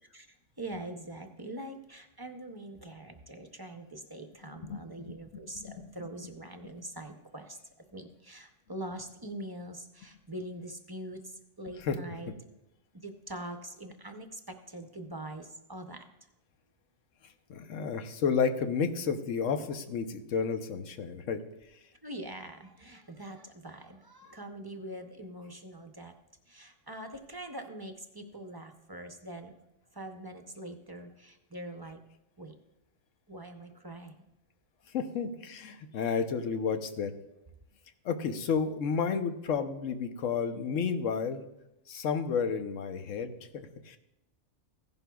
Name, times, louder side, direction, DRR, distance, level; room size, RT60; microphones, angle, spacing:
voice 1, 0.1-7.6 7.9-12.3 13.0-16.3 22.0-26.1 26.5-29.5 29.9-32.0 32.4-32.5 33.3-34.3, right 1 dB, 25° right, 5 dB, 0.5 m, -43 dB
voice 2, 4.4-5.2 5.6-5.7 11.8-12.0 17.5-21.4 34.9-37.1 38.0-41.4 41.9-44.0, left 6 dB, 90° left, 8 dB, 1.1 m, -31 dB
15.5 x 11.0 x 2.3 m, 0.90 s
omnidirectional pair, 1.3 m